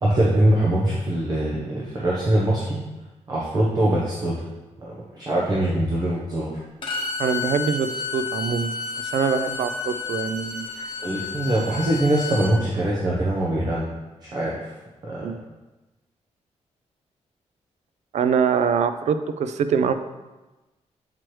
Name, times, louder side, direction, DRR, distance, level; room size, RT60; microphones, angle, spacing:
voice 1, 0.0-2.8 3.3-4.4 4.8-6.6 11.0-13.9 14.3-14.6 15.0-15.4, right 1 dB, 35° right, -5 dB, 0.9 m, -23 dB
Bowed string instrument, 6.8-12.5, left 5 dB, 45° left, 1.1 m, -31 dB
voice 2, 7.2-8.7 9.0-10.9 15.2-15.4 18.1-19.9, right 6 dB, 75° right, 10 dB, 0.4 m, -24 dB
7.6 x 4.5 x 3.1 m, 1.1 s
wide cardioid pair, 155°, 12 cm